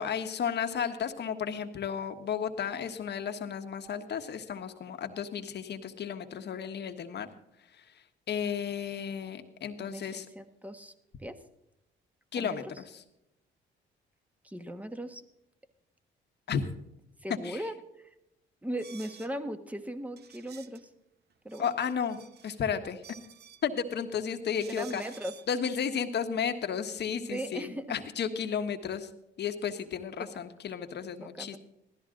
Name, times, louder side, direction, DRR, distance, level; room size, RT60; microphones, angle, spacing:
voice 1, 0.0-7.3 7.7-7.9 8.3-10.3 12.3-13.0 16.5-16.7 17.4-17.6 21.6-22.2 22.4-23.0 23.6-25.0 25.5-29.1 29.4-31.6, left 7 dB, 60° left, 7 dB, 1.4 m, -33 dB
voice 2, 9.9-10.9 11.2-11.4 12.4-12.6 14.4-15.2 17.2-18.1 18.6-20.9 21.4-21.7 24.7-25.3 27.3-27.9 31.2-31.6, right 1 dB, 5° right, 9 dB, 1.4 m, -38 dB
sound 1, 18.8-19.3 20.2-20.8 21.3-22.6 22.9-23.7 24.6-25.5, right 8 dB, 55° right, 0.9 m, -52 dB
16.0 x 13.0 x 3.8 m, 0.85 s
cardioid pair, 90°, 20 cm